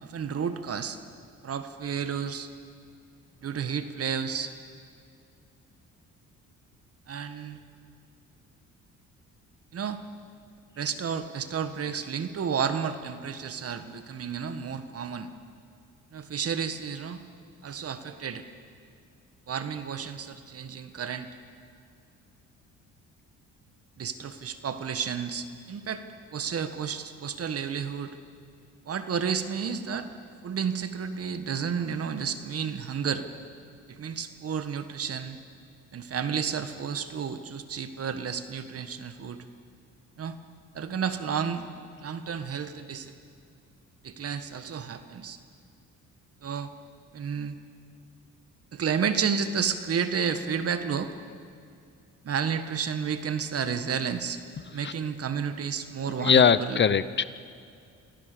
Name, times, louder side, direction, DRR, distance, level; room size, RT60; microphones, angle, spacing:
voice 1, 0.0-1.0 1.4-2.5 3.4-4.5 7.1-7.6 9.7-10.0 10.8-15.3 16.1-17.2 17.6-18.4 19.5-21.3 24.0-26.0 26.3-28.2 28.8-30.1 30.4-33.2 33.9-35.4 35.9-39.4 40.2-40.4 40.7-41.6 42.0-43.1 44.0-45.4 46.4-46.7 47.1-47.6 48.7-51.1 52.2-54.4 54.7-57.0, right 7 dB, 50° right, 10 dB, 1.6 m, -31 dB
voice 2, 56.2-57.2, left 7 dB, 40° left, 16 dB, 0.7 m, -21 dB
26.0 x 17.0 x 6.9 m, 2.4 s
cardioid pair, 90°, 30 cm